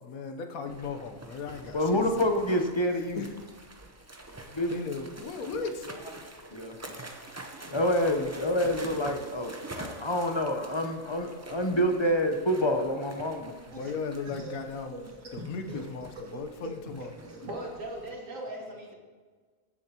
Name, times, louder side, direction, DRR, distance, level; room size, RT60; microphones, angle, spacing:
voice 1, 0.0-2.4 2.9-3.3 4.7-5.9 13.7-15.0 15.3-17.1, left 5 dB, 90° left, 6 dB, 1.3 m, -37 dB
sound 1, 0.7-18.1, right 2 dB, 20° right, 0.5 m, -46 dB
voice 2, 1.7-3.2 4.5-4.7 5.4-5.6 6.5-6.8 7.7-13.5, equal, 30° left, 4 dB, 0.6 m, -27 dB
voice 3, 14.2-14.6 15.1-15.8 16.2-16.4 17.0-18.9, right 1 dB, 70° right, -2 dB, 2.5 m, -40 dB
16.0 x 7.1 x 2.9 m, 1.5 s
omnidirectional pair, 1.4 m